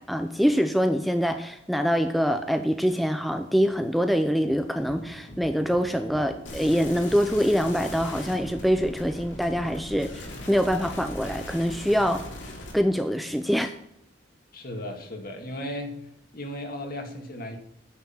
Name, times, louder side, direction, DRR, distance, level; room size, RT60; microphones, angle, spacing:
voice 1, 0.0-12.2 12.7-13.7, equal, ahead, 7 dB, 0.5 m, -24 dB
Livestock farm animals working animals, 4.4-12.6, equal, 30° left, 2.4 m, -45 dB
sound 1, 6.4-12.7, left 1 dB, 75° left, 3.2 m, -40 dB
voice 2, 14.5-16.0 16.3-17.6, left 1 dB, 50° left, 4 dB, 2.1 m, -35 dB
9.6 x 6.3 x 7.2 m, 0.76 s
head